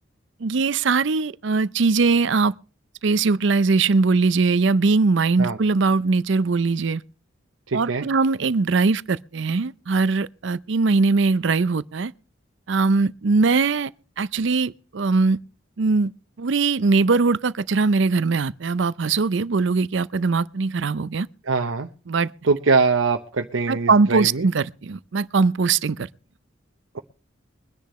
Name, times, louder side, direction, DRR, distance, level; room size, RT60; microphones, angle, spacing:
voice 1, 0.4-2.5 3.0-7.0 7.7-12.1 12.7-13.9 14.2-15.4 15.8-16.1 16.4-21.3 22.1-22.3 23.7-26.1, right 4 dB, 65° right, 0.5 m, -21 dB
voice 2, 7.7-8.0 21.5-21.9 22.4-24.5, right 4 dB, 85° right, 0.9 m, -22 dB
22.5 x 10.5 x 3.1 m
head